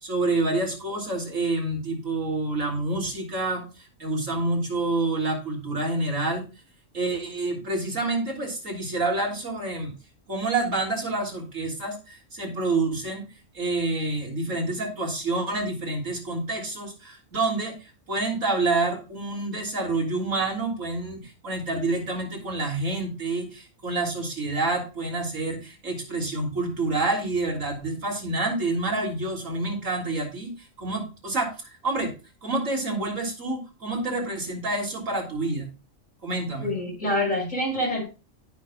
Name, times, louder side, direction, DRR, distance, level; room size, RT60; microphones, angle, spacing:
voice 1, 0.0-6.4 6.9-9.9 10.3-13.2 13.5-32.1 32.4-35.7 36.2-36.7, right 2 dB, 90° right, 0 dB, 3.7 m, -28 dB
voice 2, 36.6-38.0, left 1 dB, 85° left, -2 dB, 6.7 m, -26 dB
17.5 x 5.9 x 2.4 m, 0.31 s
omnidirectional pair, 1.3 m